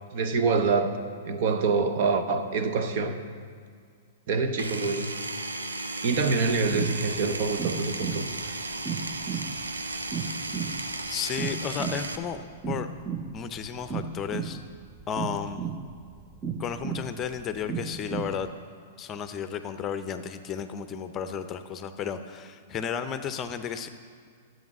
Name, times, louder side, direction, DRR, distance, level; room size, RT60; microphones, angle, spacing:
voice 1, 0.1-0.9 1.2-3.2 4.3-5.1 6.0-8.7, right 4 dB, 50° right, 7 dB, 0.9 m, -26 dB
Power tool, 4.6-12.2, right 2 dB, 85° right, 0.7 m, -34 dB
sound 1, 6.6-18.5, right 6 dB, 20° right, 0.6 m, -35 dB
voice 2, 11.1-12.4 12.7-12.9 13.3-14.6 15.1-15.7 16.6-18.5 19.0-23.9, left 7 dB, 25° left, 9 dB, 0.6 m, -33 dB
11.0 x 7.8 x 6.0 m, 2.1 s
figure-of-eight pair, 105°, 0 cm